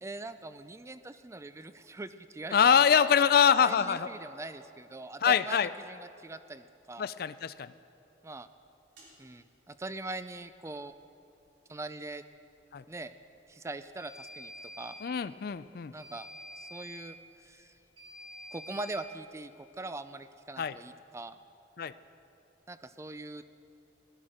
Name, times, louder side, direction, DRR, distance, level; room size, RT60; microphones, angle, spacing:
voice 1, 0.0-3.1 3.7-7.1 8.2-8.5 9.2-10.9 11.7-12.2 12.9-13.1 13.5-15.0 15.9-16.3 16.6-17.8 18.5-21.4 22.7-23.5, right 2 dB, 15° right, 12 dB, 0.4 m, -42 dB
voice 2, 2.5-4.1 5.2-5.7 7.0-7.7 12.7-12.8 15.0-15.9 20.6-20.8 21.8-21.9, left 7 dB, 55° left, 15 dB, 0.4 m, -24 dB
sound 1, 9.0-9.1 14.0-15.1 16.0-17.1 18.0-19.1, left 1 dB, 85° right, 3.6 m, -47 dB
16.5 x 12.0 x 5.0 m, 2.9 s
head